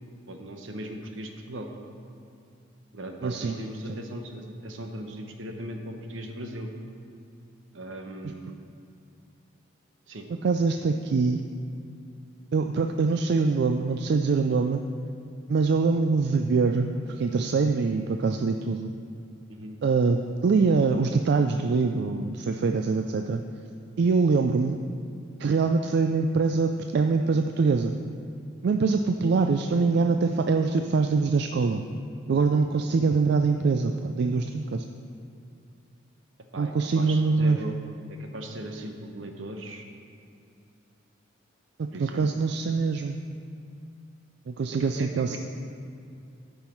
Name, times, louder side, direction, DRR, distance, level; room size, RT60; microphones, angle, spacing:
voice 1, 0.3-1.7 2.9-6.7 7.7-8.6 10.1-10.2 19.5-19.8 36.5-37.8 38.1-39.8 41.9-42.3 44.8-45.4, right 1 dB, 75° right, 3 dB, 1.0 m, -38 dB
voice 2, 3.2-3.6 3.9-4.0 10.4-11.4 12.5-14.8 15.5-18.9 19.8-23.4 24.0-24.8 25.4-27.9 28.6-31.8 32.3-34.8 36.6-37.6 41.8-43.2 44.5-45.4, right 4 dB, 55° right, 6 dB, 0.3 m, -24 dB
13.0 x 5.6 x 4.5 m, 2.5 s
head